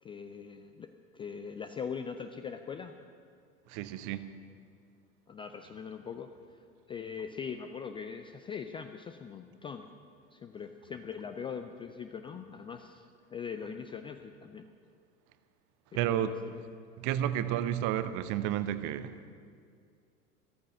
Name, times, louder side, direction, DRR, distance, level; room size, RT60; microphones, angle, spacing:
voice 1, 0.0-2.9 5.3-9.9 10.3-13.0 13.3-14.7 15.9-16.3, left 6 dB, 15° left, 0.4 m, -41 dB
voice 2, 3.7-4.4 15.9-16.4 17.0-19.3, right 11 dB, 45° right, 0.9 m, -31 dB
14.5 x 13.5 x 6.5 m
figure-of-eight pair, 80°, 43 cm